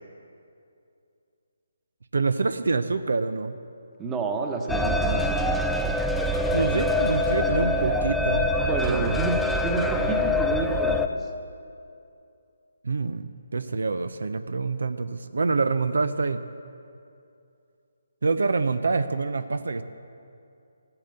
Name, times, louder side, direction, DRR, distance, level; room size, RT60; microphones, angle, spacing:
voice 1, 2.1-3.6 6.5-8.5 8.9-9.2 12.8-16.4 18.2-19.8, right 4 dB, 75° right, 11 dB, 0.6 m, -26 dB
voice 2, 4.0-5.6 8.6-9.4 9.6-11.3, right 4 dB, 15° right, 2 dB, 1.1 m, -30 dB
sound 1, 4.7-11.1, left 1 dB, 5° left, 0.4 m, -24 dB
14.0 x 8.9 x 7.8 m, 2.6 s
figure-of-eight pair, 150°, 0 cm